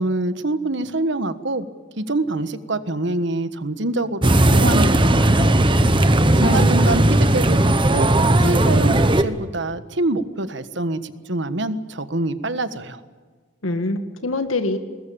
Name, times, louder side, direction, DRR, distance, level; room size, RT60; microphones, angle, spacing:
voice 1, 0.0-1.7 2.0-5.6 6.4-7.6 7.9-8.1 8.4-13.0, right 2 dB, 60° right, 11 dB, 1.4 m, -25 dB
sound 1, 4.2-9.2, right 1 dB, 25° right, 1.2 m, -16 dB
voice 2, 6.3-6.9 13.6-14.8, left 2 dB, 85° left, 8 dB, 2.0 m, -25 dB
21.0 x 20.5 x 8.7 m, 1.5 s
head